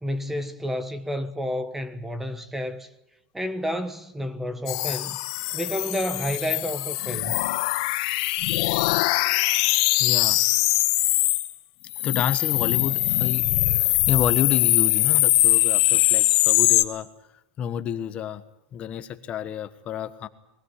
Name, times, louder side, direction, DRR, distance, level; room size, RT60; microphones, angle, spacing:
voice 1, 0.0-2.9 3.3-5.2 5.5-7.4, equal, 5° right, 1.2 m, -30 dB
sound 1, 4.7-11.5 11.9-16.8, left 19 dB, 65° left, 1.4 m, -22 dB
voice 2, 10.0-10.4 12.0-17.1 17.6-18.4 18.7-20.3, left 9 dB, 35° left, 1.3 m, -29 dB
22.5 x 16.5 x 9.7 m
supercardioid pair, 135°, 4 cm